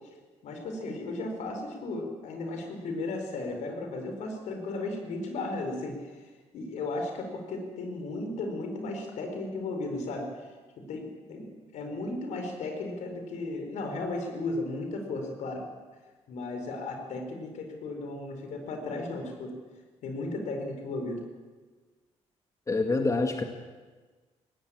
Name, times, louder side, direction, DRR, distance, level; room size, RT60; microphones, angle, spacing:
voice 1, 0.4-6.1 6.5-10.3 10.8-15.7 16.3-19.6 20.0-21.3, left 2 dB, 75° left, 4 dB, 4.7 m, -35 dB
voice 2, 22.7-23.4, left 3 dB, 25° left, 5 dB, 1.9 m, -26 dB
19.0 x 16.0 x 8.8 m, 1.4 s
cardioid pair, 90°, 12 cm